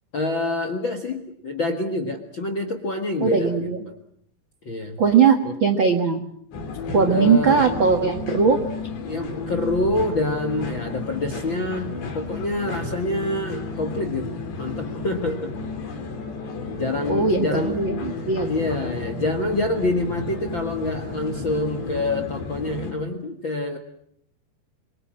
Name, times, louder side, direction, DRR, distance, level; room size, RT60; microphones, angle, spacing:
voice 1, 0.1-3.9 4.6-5.0 5.4-5.5 7.1-7.6 9.0-14.3 14.6-15.6 16.8-17.8 18.4-23.8, left 2 dB, 50° left, 7 dB, 1.4 m, -26 dB
voice 2, 3.2-3.8 5.0-6.2 6.9-8.6 17.1-18.5, right 5 dB, 70° right, 7 dB, 1.1 m, -19 dB
sound 1, 6.5-22.9, left 3 dB, 85° left, 6.0 m, -32 dB
27.5 x 23.5 x 7.6 m, 0.68 s
omnidirectional pair, 4.9 m